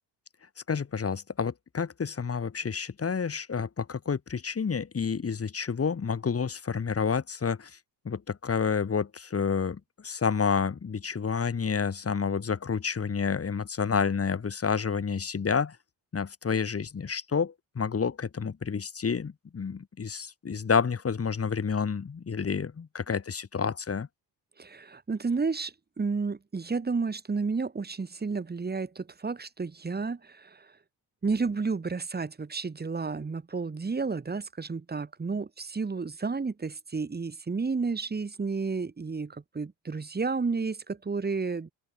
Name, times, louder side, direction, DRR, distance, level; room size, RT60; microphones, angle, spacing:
voice 1, 0.7-7.7 8.0-15.8 16.1-24.1, left 6 dB, 30° left, 4.2 m, -29 dB
voice 2, 24.6-30.7 31.2-41.7, right 4 dB, 20° right, 2.5 m, -31 dB
open air
cardioid pair, 130°, 44 cm